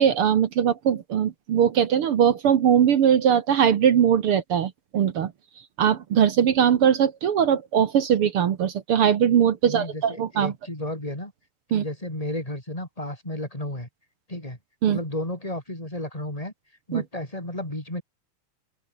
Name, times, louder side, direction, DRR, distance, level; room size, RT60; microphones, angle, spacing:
voice 1, 0.0-5.3 5.8-10.5 11.7-11.8 14.8-15.0 16.9-17.0, right 8 dB, 55° right, 1.7 m, -20 dB
voice 2, 9.6-11.3 11.7-13.9 14.3-14.6 14.9-16.5 16.9-18.0, left 1 dB, 10° left, 6.8 m, -33 dB
open air
omnidirectional pair, 3.6 m